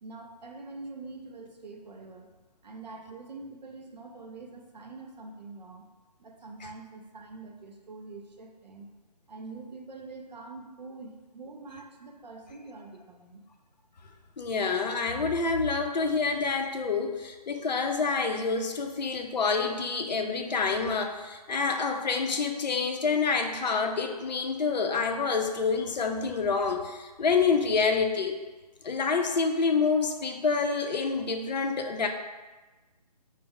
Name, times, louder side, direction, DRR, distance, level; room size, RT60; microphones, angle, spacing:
voice 1, 0.0-2.3 2.6-5.9 6.2-8.9 9.3-13.4, right 3 dB, 80° right, 3 dB, 0.6 m, -45 dB
voice 2, 14.4-28.4 28.8-32.1, left 4 dB, 85° left, 4 dB, 0.5 m, -27 dB
3.5 x 2.0 x 3.5 m, 1.2 s
hypercardioid pair, 155°, 21 cm